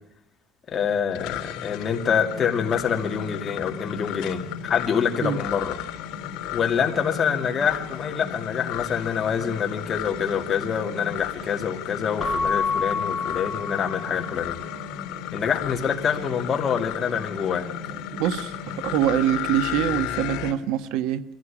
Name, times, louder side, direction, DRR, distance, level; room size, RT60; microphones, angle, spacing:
voice 1, 0.7-5.8 6.5-14.6 15.3-17.7, left 7 dB, 30° left, 3 dB, 2.5 m, -26 dB
sound 1, 1.1-20.5, left 9 dB, 75° left, 3.5 m, -34 dB
Keyboard (musical) / Bell, 12.2-14.6, left 5 dB, 10° left, 7.3 m, -28 dB
voice 2, 18.2-21.2, right 11 dB, 80° right, 11 dB, 1.4 m, -24 dB
24.0 x 15.5 x 9.9 m, 0.84 s
cardioid pair, 160°, 0 cm